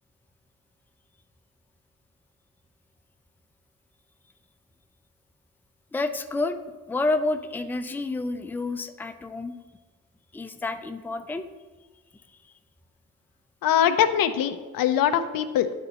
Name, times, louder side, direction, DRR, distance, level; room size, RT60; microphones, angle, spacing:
voice 1, 5.9-6.6 6.9-9.5 10.3-11.5, left 2 dB, 5° left, 8 dB, 0.4 m, -29 dB
voice 2, 13.6-15.7, left 9 dB, 80° left, 10 dB, 0.5 m, -22 dB
9.7 x 4.0 x 2.8 m, 1.3 s
supercardioid pair, 50°, 34 cm